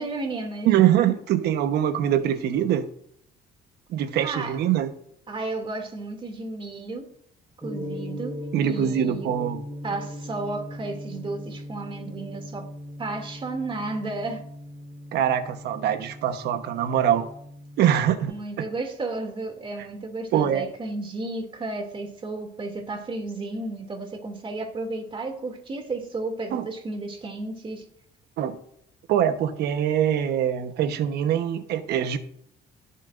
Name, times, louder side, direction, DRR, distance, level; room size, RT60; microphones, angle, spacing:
voice 1, 0.0-0.7 4.2-4.6 5.3-7.1 7.6-8.4 8.7-9.3 9.8-12.7 13.0-14.5 18.3-27.9, right 2 dB, 30° right, 2.6 m, -33 dB
voice 2, 0.6-2.9 3.9-4.9 8.5-9.6 15.1-17.3 17.8-18.3 18.6-18.7 20.3-20.7 26.5-26.7 28.4-28.6 29.1-32.2, right 10 dB, 75° right, 1.1 m, -23 dB
Gong, 7.6-18.3, left 1 dB, 10° right, 4.1 m, -39 dB
18.5 x 7.3 x 2.6 m
cardioid pair, 110°, 17 cm